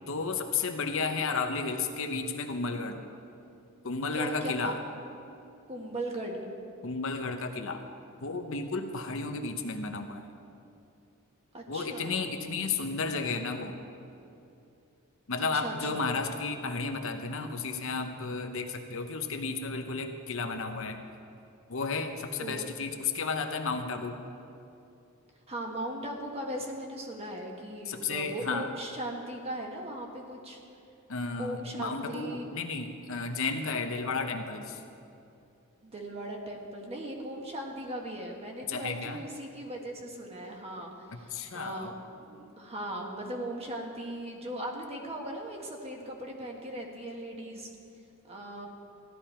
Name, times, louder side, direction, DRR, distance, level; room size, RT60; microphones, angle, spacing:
voice 1, 0.1-3.0 3.8-4.8 6.8-7.8 8.2-10.3 11.7-13.8 15.3-21.0 21.7-24.2 27.9-28.7 31.1-34.8 38.7-39.2 41.3-41.9, left 4 dB, 65° left, 5 dB, 0.9 m, -33 dB
voice 2, 4.1-4.8 5.7-6.4 11.5-12.2 15.4-16.1 22.4-22.7 25.5-30.6 31.4-32.4 35.8-47.7 48.2-48.7, right 1 dB, 30° right, 1 dB, 1.5 m, -38 dB
15.5 x 12.0 x 4.4 m, 2.7 s
head